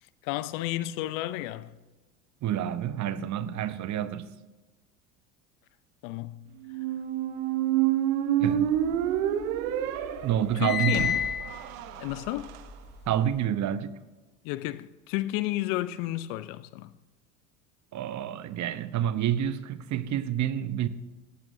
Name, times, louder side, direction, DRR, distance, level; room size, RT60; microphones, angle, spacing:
voice 1, 0.2-1.7 6.0-6.4 10.6-11.2 12.0-12.5 14.4-16.9, left 16 dB, 65° left, 0.8 m, -32 dB
voice 2, 2.4-4.3 8.4-8.7 10.2-11.2 13.1-13.9 17.9-20.9, right 10 dB, 40° right, 0.9 m, -28 dB
Squeak, 6.6-12.6, right 11 dB, 70° right, 1.0 m, -28 dB
sound 1, 8.6-9.7 10.0-13.4, left 9 dB, 25° left, 0.7 m, -33 dB
18.0 x 14.5 x 2.7 m
hypercardioid pair, 80°, 42 cm